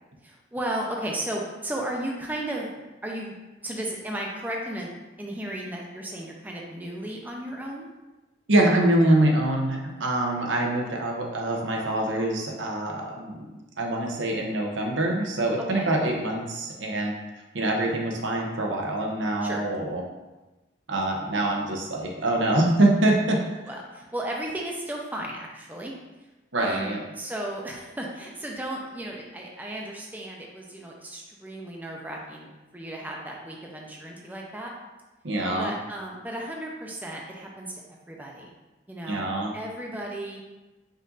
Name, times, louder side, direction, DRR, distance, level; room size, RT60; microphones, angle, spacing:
voice 1, 0.2-3.4 3.6-4.9 5.2-7.9 15.7-15.9 16.2-16.3 19.4-19.6 23.7-25.9 26.6-34.7 35.6-37.8 38.1-38.5 38.9-39.2 39.5-40.4, right 1 dB, 10° right, -1 dB, 0.5 m, -34 dB
voice 2, 8.5-13.5 13.8-17.1 17.5-20.0 20.9-23.4 26.5-27.0 35.2-35.7 39.1-39.5, right 1 dB, 80° right, 0 dB, 0.8 m, -24 dB
5.2 x 2.6 x 3.9 m, 1.1 s
head